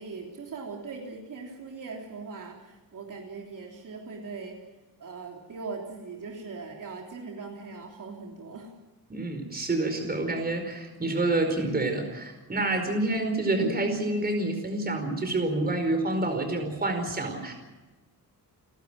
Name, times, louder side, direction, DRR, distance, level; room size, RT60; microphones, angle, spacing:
voice 1, 0.0-4.6 5.0-8.7 12.9-13.0, right 4 dB, 55° right, 0 dB, 3.5 m, -40 dB
voice 2, 9.1-17.5, right 2 dB, 25° right, 5 dB, 4.9 m, -28 dB
30.0 x 12.5 x 9.0 m, 1.2 s
wide cardioid pair, 155°, 37 cm